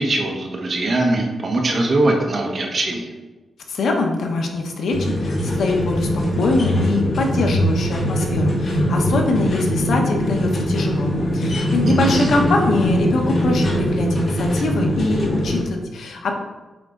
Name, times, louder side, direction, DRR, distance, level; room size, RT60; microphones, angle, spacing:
voice 1, 0.0-3.1 11.8-12.3, right 2 dB, 40° right, 1 dB, 1.1 m, -21 dB
voice 2, 3.7-16.3, left 3 dB, 70° left, 2 dB, 1.1 m, -23 dB
sound 1, 4.9-15.6, equal, 45° left, 2.1 m, -21 dB
8.6 x 3.7 x 3.9 m, 1.2 s
wide cardioid pair, 160°, 0 cm